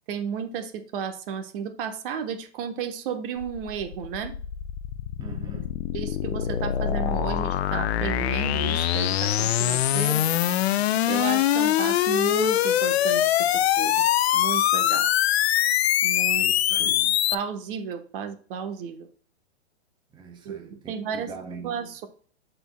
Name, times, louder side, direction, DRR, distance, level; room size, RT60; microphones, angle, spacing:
voice 1, 0.1-4.3 5.9-10.3 11.1-14.0 14.3-15.1 16.0-17.0 17.3-19.1 20.4-21.3 21.6-22.1, right 7 dB, 50° right, 1.2 m, -33 dB
sound 1, 3.4-17.3, left 12 dB, 60° left, 0.6 m, -23 dB
voice 2, 5.2-5.8 16.3-17.2 20.1-21.7, right 4 dB, 15° right, 0.9 m, -42 dB
12.5 x 4.5 x 2.2 m
hypercardioid pair, 125°, 36 cm